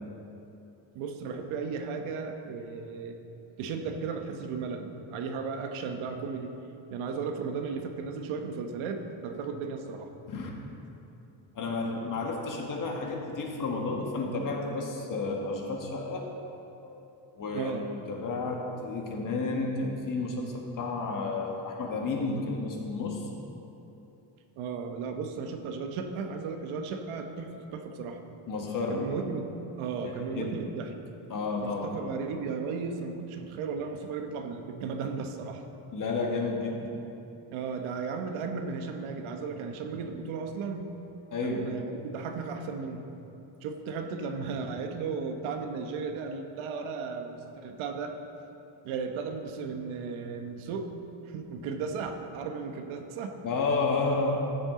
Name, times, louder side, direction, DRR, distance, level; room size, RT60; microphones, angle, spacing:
voice 1, 0.9-3.2 3.6-6.5 6.9-10.1 17.5-17.8 24.6-28.2 28.9-29.4 29.8-30.9 31.6-35.6 37.5-40.9 41.4-43.1 43.6-48.1 48.8-50.9 51.3-53.4, right 5 dB, 90° right, 5 dB, 1.1 m, -35 dB
voice 2, 11.5-16.3 16.8-17.7 18.1-23.3 28.5-29.1 30.0-30.6 31.3-32.0 35.9-37.0 41.3-41.7 53.4-54.5, left 3 dB, 40° left, 1 dB, 1.5 m, -31 dB
13.5 x 8.0 x 3.8 m, 2.9 s
cardioid pair, 125°, 47 cm